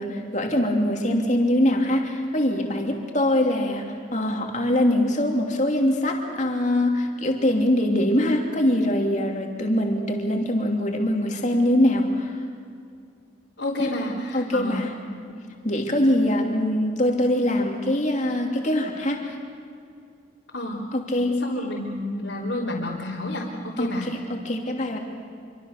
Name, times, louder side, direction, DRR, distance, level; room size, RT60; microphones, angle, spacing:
voice 1, 0.0-3.9 4.1-12.4 13.8-14.1 14.3-15.0 15.6-19.4 20.9-21.4 23.8-25.0, left 1 dB, 35° left, 2 dB, 3.0 m, -23 dB
voice 2, 13.6-14.8 15.3-15.4 20.5-20.8 21.4-24.1, left 1 dB, 65° left, -6 dB, 3.5 m, -30 dB
26.5 x 25.0 x 6.7 m, 2.4 s
head